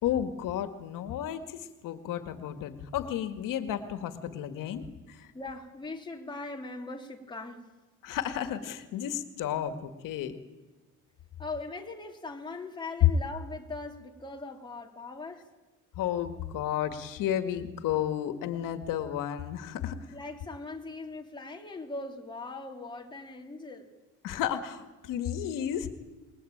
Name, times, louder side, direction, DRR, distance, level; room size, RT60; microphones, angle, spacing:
voice 1, 0.0-5.3 8.0-10.4 16.0-20.0 24.2-25.9, left 10 dB, 85° left, 2.1 m, -33 dB
voice 2, 5.3-7.6 11.4-15.5 20.1-23.9, left 3 dB, 15° left, 3.2 m, -40 dB
29.5 x 21.0 x 8.9 m
cardioid pair, 150°, 32 cm